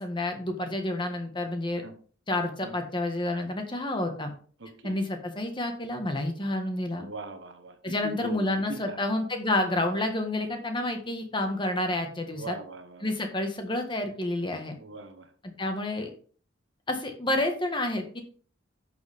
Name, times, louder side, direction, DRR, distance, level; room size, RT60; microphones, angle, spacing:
voice 1, 0.0-1.8 2.3-4.3 4.8-7.1 7.8-12.5 13.0-14.8 15.6-16.1 16.9-18.2, left 1 dB, 25° left, 5 dB, 1.5 m, -29 dB
voice 2, 4.6-5.0 7.0-9.0 12.3-13.1 14.8-15.3, right 2 dB, 65° right, 8 dB, 1.3 m, -41 dB
11.0 x 6.8 x 3.6 m, 0.44 s
head